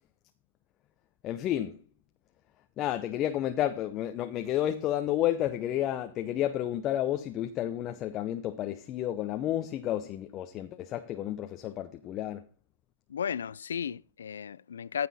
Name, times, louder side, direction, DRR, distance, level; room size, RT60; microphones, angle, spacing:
voice 1, 1.2-1.8 2.8-12.4, left 12 dB, 30° left, 0.7 m, -31 dB
voice 2, 13.1-15.1, left 7 dB, 85° left, 0.5 m, -34 dB
15.0 x 6.1 x 4.2 m
hypercardioid pair, 140°, 0 cm